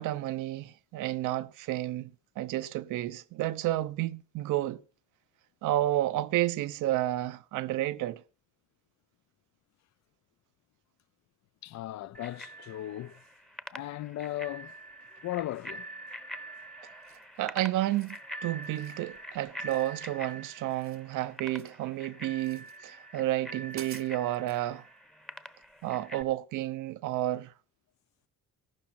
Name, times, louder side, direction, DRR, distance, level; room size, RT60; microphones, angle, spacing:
voice 1, 0.0-4.8 5.6-8.2 17.4-24.8 25.8-27.5, right 15 dB, 85° right, 0.8 m, -31 dB
voice 2, 11.6-13.2 13.7-14.8 15.2-15.9, left 14 dB, 65° left, 0.5 m, -37 dB
Bicycle bell, 12.1-26.2, right 1 dB, ahead, 0.8 m, -45 dB
sound 1, 17.0-17.4 17.8-18.2 18.6-19.0 19.7-20.3 20.6-21.8 22.4-22.8 23.3-23.4 23.7-24.6, right 8 dB, 45° right, 0.9 m, -50 dB
14.0 x 12.0 x 4.2 m
cardioid pair, 90°, 30 cm